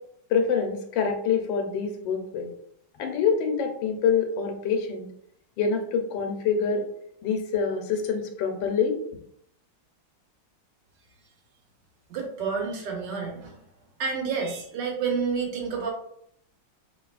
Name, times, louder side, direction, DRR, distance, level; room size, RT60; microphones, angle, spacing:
voice 1, 0.3-2.5 3.0-5.1 5.6-6.8 7.2-9.0, left 6 dB, 85° left, 4 dB, 1.4 m, -26 dB
voice 2, 12.1-13.6 14.0-15.9, right 5 dB, 75° right, 1 dB, 1.4 m, -29 dB
4.5 x 2.9 x 2.3 m, 0.69 s
omnidirectional pair, 2.0 m